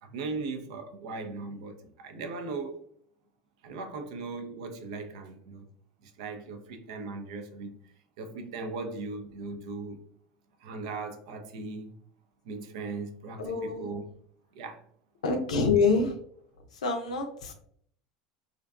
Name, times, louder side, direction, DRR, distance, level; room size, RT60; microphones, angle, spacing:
voice 1, 0.0-2.8 3.6-5.6 6.0-7.7 8.2-10.0 10.6-11.9 12.5-14.0 14.6-14.8, right 3 dB, 70° right, 0.4 m, -38 dB
voice 2, 13.4-13.9 15.2-16.1 16.7-17.5, left 4 dB, 85° left, 0.5 m, -26 dB
2.5 x 2.2 x 2.3 m
hypercardioid pair, 80°, 4 cm